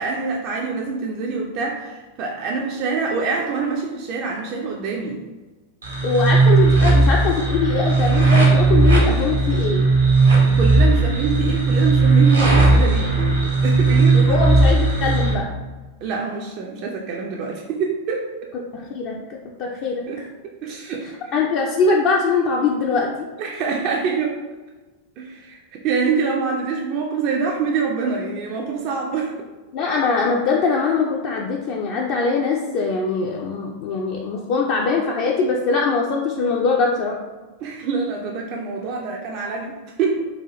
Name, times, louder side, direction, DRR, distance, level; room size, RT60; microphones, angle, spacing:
voice 1, 0.0-5.2 10.2-14.5 16.0-18.3 20.1-20.2 20.6-21.4 23.4-24.4 25.2-29.5 37.6-40.2, right 5 dB, 40° right, 0 dB, 0.4 m, -25 dB
sound 1, 5.8-15.3, right 3 dB, 75° right, 1.0 m, -16 dB
voice 2, 6.0-9.8 13.9-15.5 18.7-19.2 19.6-20.1 21.3-23.3 29.7-37.2, left 4 dB, 45° left, -1 dB, 0.4 m, -22 dB
3.9 x 2.3 x 2.9 m, 1.2 s
figure-of-eight pair, 90°, 0 cm